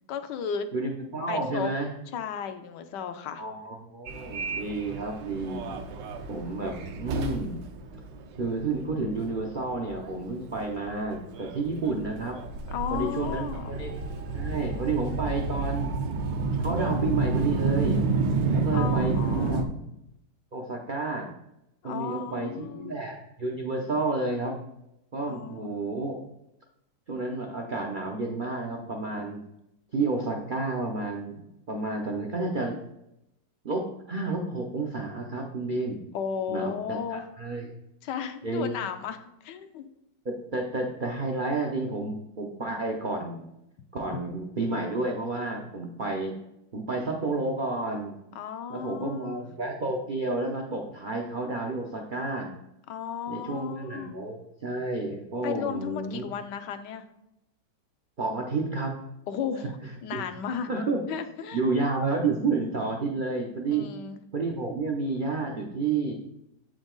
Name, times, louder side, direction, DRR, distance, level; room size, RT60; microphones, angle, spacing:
voice 1, 0.1-0.7 1.3-1.7 2.1-3.4 12.7-13.7 18.7-19.7 21.8-23.0 25.3-25.9 36.1-37.2 38.0-39.9 48.3-49.4 52.9-54.1 55.4-57.0 59.3-59.8 60.0-60.7 61.1-61.6 63.7-64.2, left 7 dB, 75° left, 9 dB, 1.2 m, -34 dB
voice 2, 0.7-1.9 3.4-5.6 6.3-7.6 8.4-12.4 12.9-14.0 14.3-15.9 16.6-18.0 18.5-19.8 20.5-21.3 21.8-24.6 25.1-26.2 27.1-29.4 29.9-32.8 33.6-36.0 36.5-36.7 37.1-37.7 38.4-38.7 40.2-43.5 43.9-46.3 46.7-48.2 48.7-52.5 53.3-56.2 58.2-59.0 60.1-60.2 60.7-61.0 61.5-63.9 64.3-66.2, right 3 dB, 60° right, 1 dB, 0.5 m, -30 dB
Subway metro underground, 4.1-19.6, right 3 dB, 75° right, 1.3 m, -30 dB
7.9 x 5.1 x 3.8 m, 0.85 s
omnidirectional pair, 2.0 m